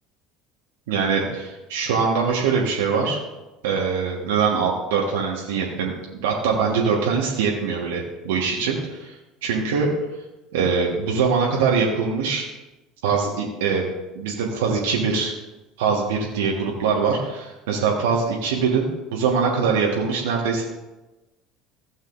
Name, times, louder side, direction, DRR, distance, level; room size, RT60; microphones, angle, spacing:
voice 1, 0.9-3.2 3.6-5.9 6.2-9.2 9.4-9.9 10.5-12.5 13.0-13.9 14.1-15.3 15.8-20.6, right 5 dB, 75° right, -2 dB, 1.3 m, -23 dB
15.5 x 7.4 x 2.5 m, 1.0 s
hypercardioid pair, 70°, 0 cm